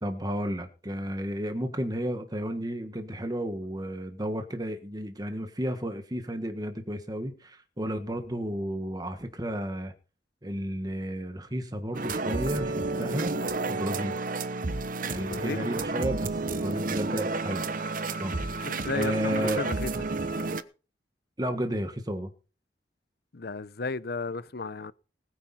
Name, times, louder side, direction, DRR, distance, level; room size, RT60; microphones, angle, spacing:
voice 1, 0.0-9.9 10.4-13.3 13.7-14.2 15.1-17.7 18.2-18.7 18.9-19.6 21.4-22.3, equal, 20° right, 1.5 m, -32 dB
sound 1, 11.9-20.6, right 3 dB, 50° right, 1.0 m, -31 dB
voice 2, 15.1-15.7 18.6-19.9 23.3-24.9, left 4 dB, 60° left, 0.8 m, -34 dB
20.0 x 9.6 x 4.4 m
head